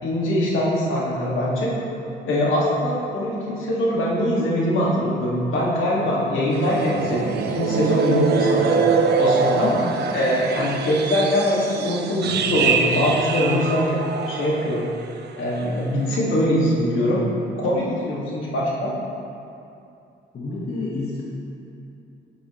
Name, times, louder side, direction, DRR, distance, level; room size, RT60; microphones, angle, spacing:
voice 1, 0.0-1.7 2.3-8.8 9.2-9.7 10.1-14.0 14.3-14.9 15.4-17.2 17.6-18.9, left 1 dB, 85° left, -5 dB, 2.2 m, -22 dB
sound 1, 6.5-15.1 15.4-15.7 16.1-16.2, right 5 dB, 55° right, 0.7 m, -24 dB
voice 2, 9.5-10.1 20.3-21.2, left 2 dB, 55° left, -5 dB, 1.5 m, -30 dB
9.8 x 8.2 x 3.2 m, 2.6 s
cardioid pair, 90°, 20 cm